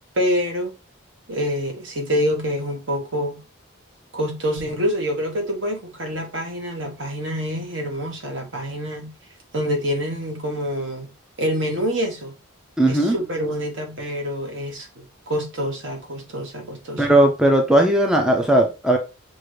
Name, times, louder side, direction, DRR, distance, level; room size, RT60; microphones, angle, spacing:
voice 1, 0.1-0.7 1.3-3.4 4.1-9.1 9.5-11.1 11.4-12.3 12.9-17.1, equal, 60° right, 1.3 m, -26 dB
voice 2, 12.8-13.2 17.0-19.0, right 1 dB, 5° right, 0.4 m, -17 dB
6.1 x 2.5 x 3.2 m
head